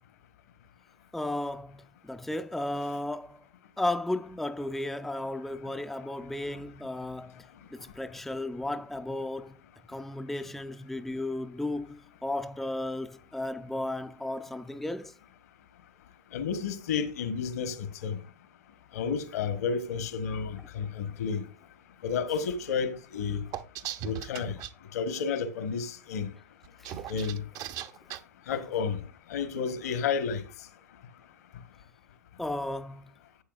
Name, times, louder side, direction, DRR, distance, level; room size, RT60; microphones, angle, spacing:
voice 1, 1.1-3.4 3.8-9.6 9.9-15.1 26.8-27.0 28.5-28.6 32.4-33.1, left 1 dB, ahead, 0.5 m, -34 dB
voice 2, 16.3-18.2 18.9-21.4 22.0-23.4 24.0-24.6 24.9-26.3 27.1-27.4 28.5-29.0 29.3-30.4, left 6 dB, 70° left, 1.4 m, -31 dB
sound 1, 23.5-24.7 26.6-28.2, right 11 dB, 45° right, 0.8 m, -37 dB
11.5 x 8.4 x 2.5 m
figure-of-eight pair, 90°, 9 cm